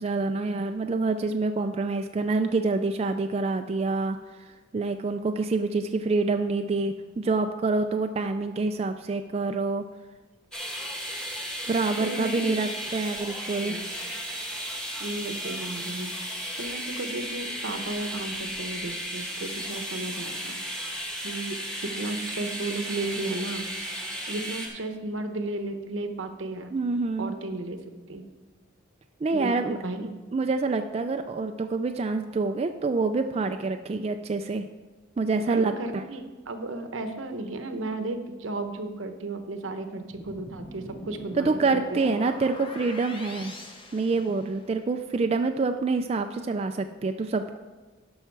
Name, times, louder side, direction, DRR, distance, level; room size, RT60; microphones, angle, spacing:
voice 1, 0.0-9.8 11.7-13.8 26.7-27.3 29.2-29.8 30.3-34.7 35.2-36.0 41.4-43.5 43.9-47.6, right 3 dB, 30° right, 6 dB, 0.3 m, -27 dB
sound 1, 10.5-24.7, equal, 5° left, 1.1 m, -35 dB
voice 2, 12.0-12.6 13.6-13.9 15.0-16.1 16.6-20.6 21.2-23.7 24.3-26.7 27.2-27.8 28.1-28.3 29.3-30.1 35.4-42.1, right 2 dB, 80° right, 7 dB, 0.9 m, -34 dB
sound 2, 40.1-44.9, left 1 dB, 25° left, 0.9 m, -43 dB
11.5 x 5.6 x 4.6 m, 1.3 s
head